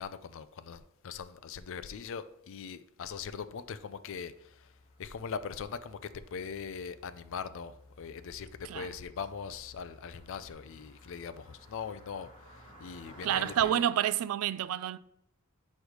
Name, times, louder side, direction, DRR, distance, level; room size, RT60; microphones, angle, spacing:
voice 1, 0.0-4.7 5.0-12.3 12.8-13.8, left 6 dB, 60° left, 0.4 m, -41 dB
Car passing by, 3.5-13.6, left 1 dB, 20° left, 2.1 m, -55 dB
voice 2, 13.2-15.0, right 10 dB, 70° right, 0.3 m, -29 dB
8.0 x 3.1 x 4.9 m
head